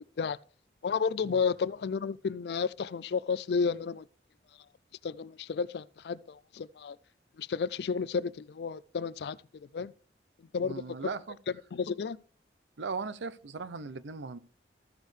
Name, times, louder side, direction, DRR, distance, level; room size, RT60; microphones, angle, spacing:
voice 1, 0.8-4.0 5.0-7.0 7.4-9.4 9.7-9.9 10.4-10.8 11.7-12.2, left 5 dB, 60° left, 0.4 m, -32 dB
voice 2, 10.6-11.4 12.8-14.4, right 4 dB, 90° right, 0.6 m, -38 dB
14.0 x 6.4 x 3.2 m
head